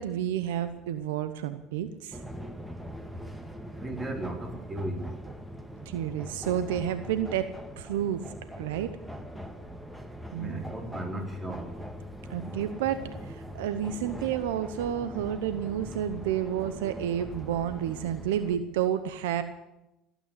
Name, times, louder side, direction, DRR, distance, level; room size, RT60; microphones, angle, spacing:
voice 1, 0.0-2.2 5.9-8.2 8.6-8.9 10.3-10.7 12.3-19.4, right 10 dB, 80° right, 11 dB, 0.8 m, -30 dB
sound 1, 2.1-18.6, equal, 5° right, 1.9 m, -42 dB
voice 2, 3.8-5.1 10.4-11.7, right 1 dB, 25° right, 2 dB, 3.9 m, -35 dB
17.5 x 9.2 x 8.1 m, 0.94 s
hypercardioid pair, 80°, 0 cm